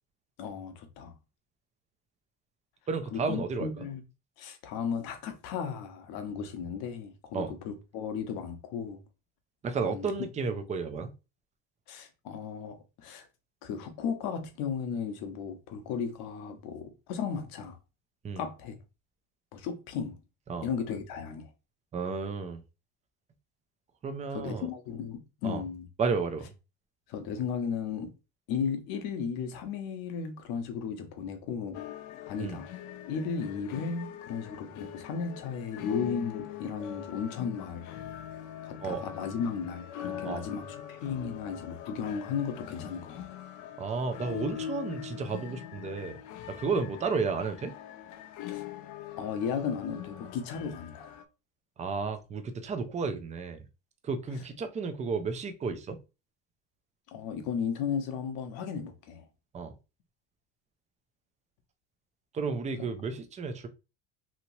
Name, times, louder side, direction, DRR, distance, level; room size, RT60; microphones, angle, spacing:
voice 1, 0.4-1.1 3.1-4.0 4.4-9.0 9.8-10.1 11.9-13.3 13.6-17.8 18.4-18.8 19.5-20.2 20.6-21.5 24.3-25.9 27.1-28.1 28.5-31.8 32.3-32.7 33.1-37.9 38.6-43.2 48.5-48.6 49.2-51.1 57.1-59.3 62.8-62.9, left 6 dB, 70° left, 0.9 m, -35 dB
voice 2, 2.9-3.9 7.3-7.5 9.6-11.1 18.2-18.4 20.5-20.7 21.9-22.6 24.0-24.7 25.4-25.6 26.0-26.5 32.4-32.6 38.8-39.0 40.2-40.4 43.8-46.2 46.5-47.7 51.8-53.6 54.0-56.0 59.5-59.7 62.3-63.7, right 4 dB, 20° right, 0.4 m, -32 dB
sound 1, 31.7-51.2, left 10 dB, 50° left, 0.5 m, -42 dB
2.9 x 2.8 x 2.7 m
cardioid pair, 120°, 37 cm